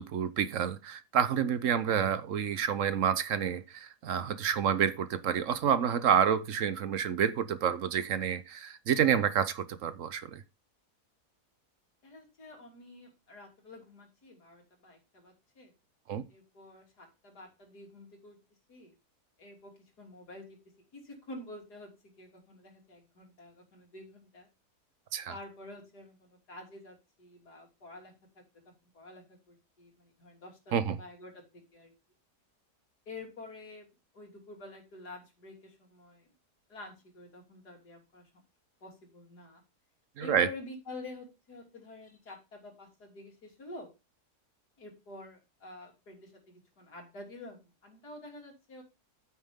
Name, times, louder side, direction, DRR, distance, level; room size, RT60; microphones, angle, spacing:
voice 1, 0.0-10.4 16.1-16.2 25.1-25.3 30.7-31.0 40.2-40.5, right 8 dB, 60° right, 1.0 m, -29 dB
voice 2, 12.0-15.7 16.3-18.4 18.7-18.9 19.4-20.6 20.9-21.9 22.2-24.5 25.3-31.9 33.1-33.9 34.1-36.3 36.7-38.3 38.8-39.6 40.2-43.9 44.8-48.8, left 2 dB, 80° left, 3.8 m, -49 dB
9.2 x 8.9 x 3.6 m
omnidirectional pair, 1.7 m